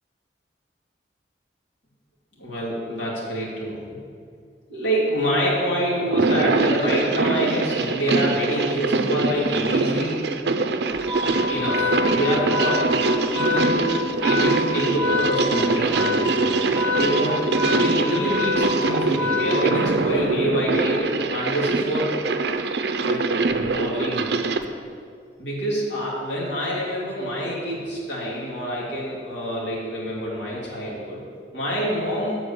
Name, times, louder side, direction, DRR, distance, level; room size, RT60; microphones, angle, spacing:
voice 1, 2.4-3.8 4.7-10.4 11.5-12.9 13.3-13.9 14.2-16.5 16.9-22.1 23.0-23.3 23.6-24.3 25.4-31.2 31.5-32.4, equal, 85° left, -5 dB, 2.1 m, -26 dB
sound 1, 6.0-24.6, right 3 dB, 65° right, 0.5 m, -23 dB
Organ, 11.0-20.1, left 3 dB, 10° left, 1.0 m, -26 dB
8.0 x 4.5 x 6.7 m, 2.2 s
head